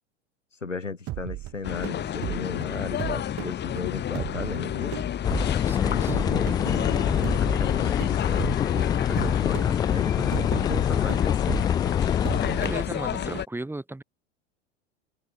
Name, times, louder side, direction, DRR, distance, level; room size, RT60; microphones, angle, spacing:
voice 1, 0.6-4.9 5.8-11.6, left 4 dB, 90° left, 7.7 m, -35 dB
sound 1, 1.1-13.4, right 16 dB, 40° right, 3.7 m, -37 dB
sound 2, 1.6-13.5, left 10 dB, 30° left, 2.7 m, -32 dB
sound 3, 5.2-12.9, left 9 dB, 10° left, 0.3 m, -25 dB
voice 2, 5.7-6.2 7.0-7.2 12.6-14.0, right 2 dB, 5° right, 4.6 m, -36 dB
open air
figure-of-eight pair, 90°, 36 cm